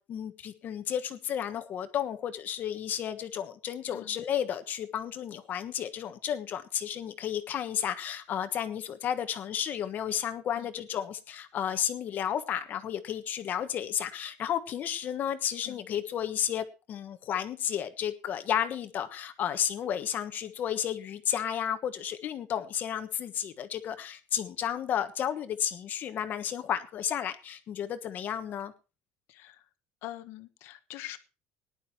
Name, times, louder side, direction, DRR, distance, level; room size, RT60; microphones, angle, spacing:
voice 1, 0.0-28.7, left 9 dB, 40° left, 10 dB, 1.4 m, -32 dB
voice 2, 29.3-29.6 30.0-31.2, left 15 dB, 65° left, 11 dB, 1.3 m, -44 dB
19.0 x 11.0 x 3.0 m, 0.30 s
cardioid pair, 145°, 4 cm